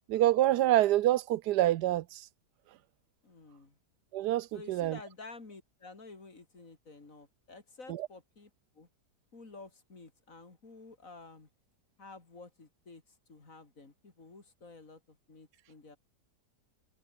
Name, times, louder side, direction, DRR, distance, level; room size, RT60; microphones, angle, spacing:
voice 1, 0.1-2.2 4.1-5.0, right 14 dB, 90° right, 1.3 m, -26 dB
voice 2, 3.2-3.8 4.5-8.9 9.3-11.5 12.0-16.0, left 3 dB, 55° left, 3.7 m, -51 dB
omnidirectional pair, 1.7 m